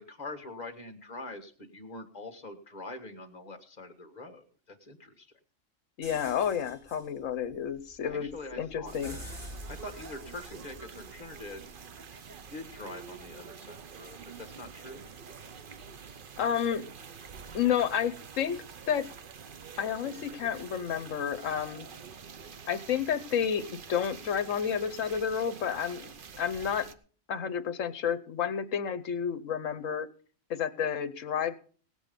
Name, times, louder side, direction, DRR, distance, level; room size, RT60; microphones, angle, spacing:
voice 1, 0.0-5.3 8.0-8.9 9.7-11.7 12.2-15.1, left 2 dB, 30° left, 5 dB, 1.7 m, -44 dB
voice 2, 6.0-9.2 16.4-16.8 17.5-18.6 18.9-19.1 19.8-21.9 22.7-26.9 27.3-30.1 30.5-31.5, left 8 dB, 70° left, 12 dB, 1.2 m, -30 dB
sound 1, 6.0-11.8, equal, 65° right, 8.6 m, -48 dB
sound 2, 8.9-26.9, right 6 dB, 45° right, 0.8 m, -47 dB
18.0 x 8.2 x 5.2 m, 0.43 s
omnidirectional pair, 1.4 m